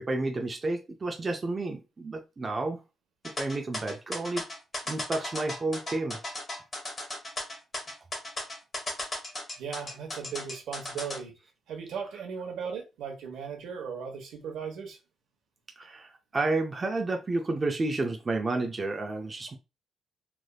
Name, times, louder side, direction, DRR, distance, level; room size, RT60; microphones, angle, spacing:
voice 1, 0.0-2.8 3.4-4.5 4.9-6.2 15.8-19.6, right 2 dB, 25° right, 0.4 m, -31 dB
sound 1, 3.2-11.2, left 1 dB, 25° left, 1.3 m, -36 dB
voice 2, 9.6-11.3 11.7-15.0, right 6 dB, 85° right, 1.0 m, -37 dB
3.3 x 2.4 x 2.3 m
cardioid pair, 155°, 0 cm